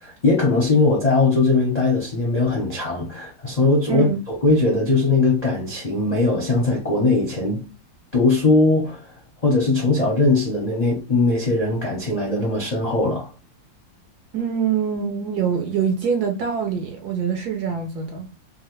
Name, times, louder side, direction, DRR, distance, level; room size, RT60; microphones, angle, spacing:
voice 1, 0.0-7.6 8.1-9.0 9.4-13.3, left 3 dB, 45° left, 0.5 m, -20 dB
voice 2, 14.3-18.3, right 7 dB, 70° right, 1.0 m, -24 dB
3.0 x 2.4 x 3.0 m
omnidirectional pair, 2.1 m